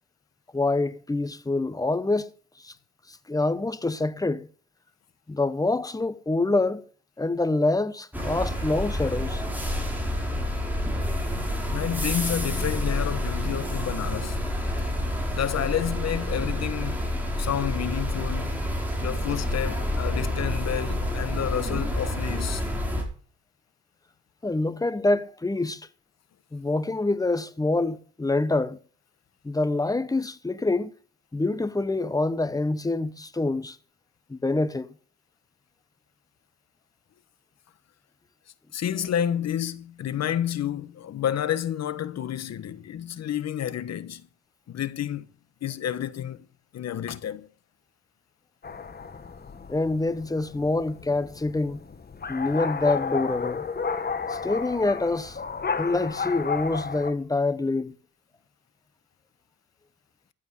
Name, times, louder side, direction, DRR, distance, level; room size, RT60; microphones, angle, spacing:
voice 1, 0.5-2.3 2.6-2.7 3.3-4.5 5.3-6.8 7.2-9.4 24.4-25.8 26.5-28.8 29.4-30.9 31.3-33.8 34.3-34.9 49.7-51.8 52.3-53.7 54.3-55.4 55.8-58.0, left 2 dB, 10° left, 1.1 m, -26 dB
sound 1, 8.1-23.0, left 1 dB, 5° right, 5.5 m, -28 dB
voice 2, 11.7-14.5 15.3-17.0 17.4-18.6 19.0-22.6 38.7-44.2 44.7-45.3 45.6-46.5 46.7-47.5, left 10 dB, 60° left, 1.2 m, -30 dB
sound 2, 48.6-57.1, left 5 dB, 30° left, 1.5 m, -32 dB
14.5 x 8.3 x 5.5 m
cardioid pair, 90°, 30 cm